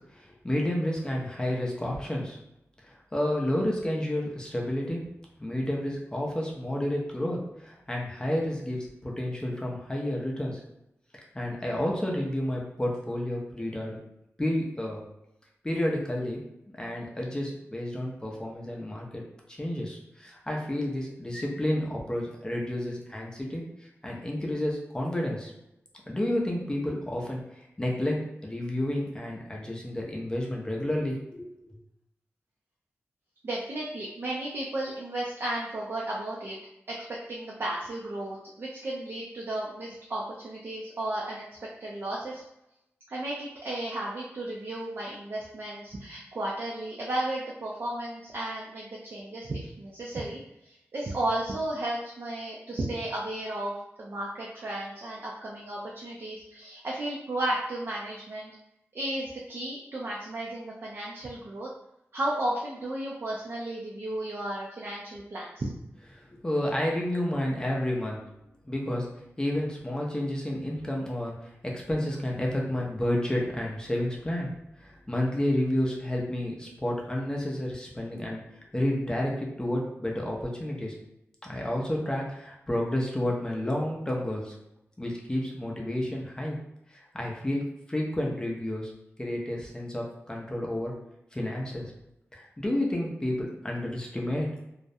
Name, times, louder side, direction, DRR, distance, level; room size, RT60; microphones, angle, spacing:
voice 1, 0.1-2.4 2.8-5.1 5.4-10.6 11.3-14.0 14.4-15.0 15.6-16.4 16.8-19.2 19.5-23.7 24.0-25.5 26.1-31.8 66.1-68.2 68.7-69.1 69.4-74.5 74.8-78.4 78.7-80.9 81.4-84.6 85.0-86.6 86.9-88.9 89.2-90.9 91.3-91.9 92.3-94.5, left 1 dB, 15° left, -2 dB, 0.5 m, -30 dB
voice 2, 33.4-36.6 36.9-37.0 37.3-41.4 41.8-42.4 43.1-53.7 54.0-58.5 58.9-61.7 62.1-65.7, right 1 dB, 50° right, -4 dB, 0.4 m, -34 dB
2.3 x 2.0 x 2.6 m, 0.84 s
wide cardioid pair, 110°, 5 cm